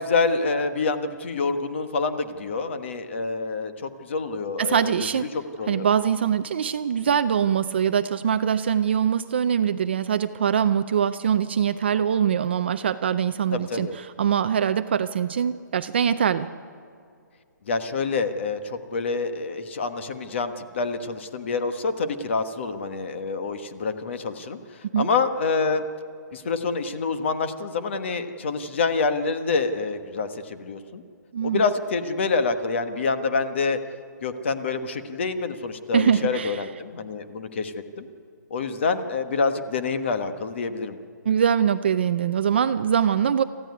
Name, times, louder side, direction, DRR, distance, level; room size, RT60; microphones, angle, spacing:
voice 1, 0.0-4.9 5.3-5.9 13.5-13.9 17.7-25.8 26.3-31.0 31.4-33.8 34.2-38.1 38.5-41.0, left 4 dB, 35° left, 9 dB, 1.3 m, -27 dB
voice 2, 4.6-5.3 5.7-16.5 24.9-25.1 31.3-31.6 35.9-36.6 41.3-43.4, right 8 dB, 35° right, 10 dB, 0.5 m, -23 dB
27.0 x 14.5 x 9.6 m, 2.3 s
hypercardioid pair, 175°, 10 cm